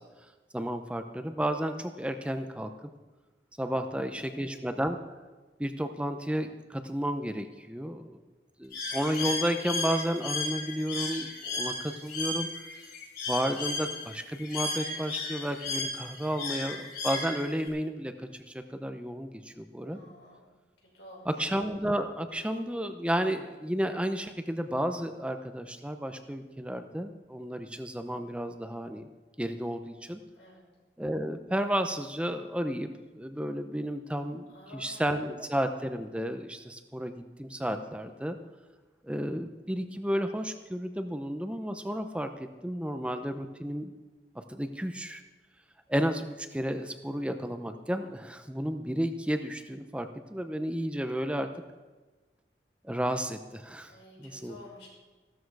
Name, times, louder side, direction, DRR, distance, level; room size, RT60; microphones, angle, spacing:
voice 1, 0.5-2.7 3.6-5.0 5.6-8.2 8.6-12.5 13.3-20.0 21.3-29.1 29.4-30.2 31.0-38.4 39.0-43.9 44.5-45.2 45.9-51.5 52.8-53.9 54.2-54.6, equal, 5° right, 7 dB, 0.7 m, -32 dB
voice 2, 3.7-4.7 19.8-20.5 20.9-21.5 30.3-30.6 34.5-35.2 53.9-54.9, left 1 dB, 90° left, -2 dB, 5.8 m, -51 dB
Bird, 8.7-17.7, left 3 dB, 60° left, 5.1 m, -35 dB
15.5 x 13.0 x 4.8 m, 1.3 s
head